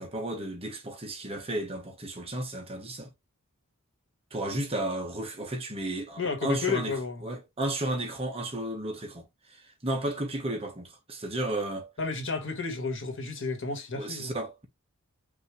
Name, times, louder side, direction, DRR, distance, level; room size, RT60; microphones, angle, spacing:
voice 1, 0.0-3.1 4.3-11.9 13.9-14.7, right 1 dB, 25° right, 1.3 m, -33 dB
voice 2, 6.2-7.3 12.0-14.3, left 4 dB, 60° left, 1.8 m, -32 dB
5.5 x 2.9 x 3.2 m
head